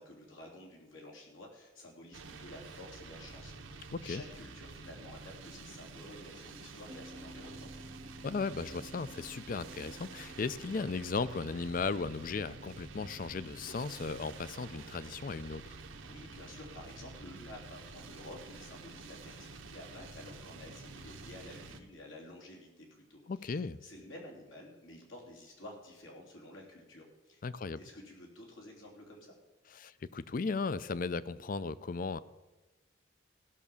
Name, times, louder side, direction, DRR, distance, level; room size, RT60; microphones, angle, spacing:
voice 1, 0.0-7.7 16.0-27.4 27.8-29.4, left 1 dB, 85° left, -1 dB, 3.2 m, -51 dB
sound 1, 2.1-21.8, right 3 dB, 90° right, 1.1 m, -49 dB
voice 2, 3.9-4.2 8.2-15.8 23.3-23.8 27.4-27.8 29.7-32.2, left 4 dB, 45° left, 17 dB, 0.4 m, -36 dB
sound 2, 6.9-19.6, right 1 dB, 20° right, 0.7 m, -57 dB
15.5 x 6.1 x 7.0 m, 1.1 s
head